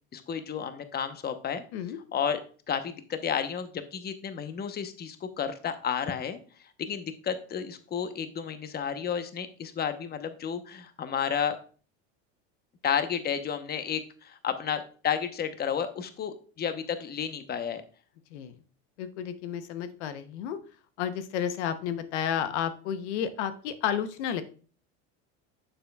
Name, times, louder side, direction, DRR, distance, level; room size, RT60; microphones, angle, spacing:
voice 1, 0.1-1.6 2.1-2.4 2.7-6.4 6.8-11.6 12.8-17.8, left 7 dB, 30° left, 9 dB, 0.9 m, -32 dB
voice 2, 19.0-20.6 21.0-24.4, left 9 dB, 85° left, 11 dB, 0.9 m, -31 dB
8.8 x 6.9 x 2.3 m, 0.39 s
supercardioid pair, 110°, 33 cm